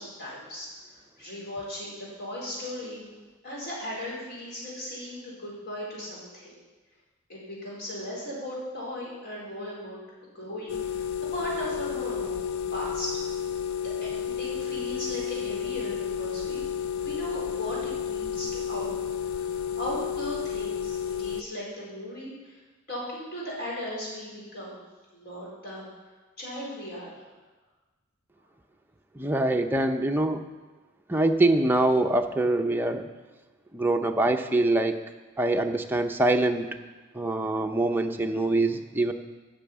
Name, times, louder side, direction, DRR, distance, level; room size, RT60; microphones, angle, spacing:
voice 1, 0.0-3.0 3.4-6.6 7.3-11.0 11.3-12.4 12.7-13.1 14.0-16.7 16.9-18.9 19.3-22.6 22.9-24.8 25.1-25.9 26.4-27.2, equal, 55° left, -5 dB, 4.6 m, -37 dB
sound 1, 10.7-21.4, left 8 dB, 80° left, 0.5 m, -31 dB
voice 2, 29.2-30.4 31.1-33.1 33.7-35.0 35.4-36.7 37.1-39.1, right 2 dB, 10° right, 4 dB, 0.6 m, -24 dB
10.5 x 6.2 x 8.6 m, 1.3 s
head